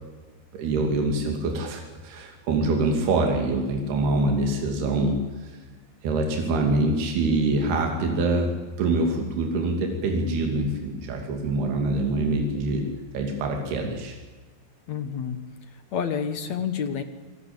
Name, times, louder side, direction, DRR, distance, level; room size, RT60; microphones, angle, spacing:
voice 1, 0.5-5.6 6.0-12.9 13.1-14.2, right 2 dB, 75° right, 2 dB, 4.5 m, -25 dB
voice 2, 14.9-15.5 15.9-17.0, left 7 dB, 55° left, 9 dB, 2.2 m, -29 dB
28.5 x 19.0 x 8.7 m, 1.3 s
omnidirectional pair, 4.6 m